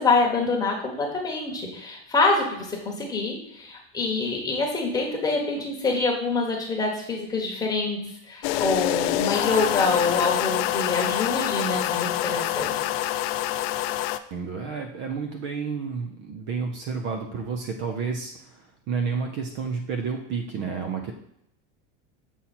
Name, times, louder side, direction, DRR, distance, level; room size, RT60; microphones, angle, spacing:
voice 1, 0.0-8.0 8.3-12.7, left 3 dB, 10° left, -1 dB, 1.1 m, -26 dB
sound 1, 8.4-14.2, left 13 dB, 60° left, 0.4 m, -26 dB
voice 2, 14.3-21.1, right 5 dB, 35° right, 4 dB, 0.5 m, -30 dB
7.2 x 4.2 x 4.2 m, 0.78 s
cardioid pair, 175°, 34 cm